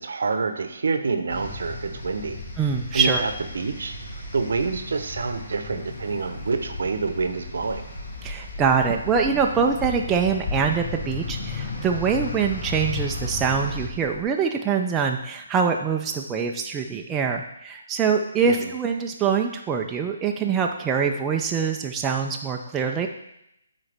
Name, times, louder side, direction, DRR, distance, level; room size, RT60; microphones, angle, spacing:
voice 1, 0.0-2.4 2.9-7.9 18.5-18.7, right 4 dB, 70° right, 8 dB, 0.8 m, -27 dB
sound 1, 1.3-13.9, left 3 dB, 70° left, 2.4 m, -36 dB
voice 2, 2.6-3.2 8.2-23.1, right 6 dB, 15° right, 2 dB, 0.4 m, -24 dB
sound 2, 4.7-14.2, left 4 dB, 35° left, 1.2 m, -40 dB
9.5 x 4.1 x 3.4 m, 0.82 s
hypercardioid pair, 155°, 0 cm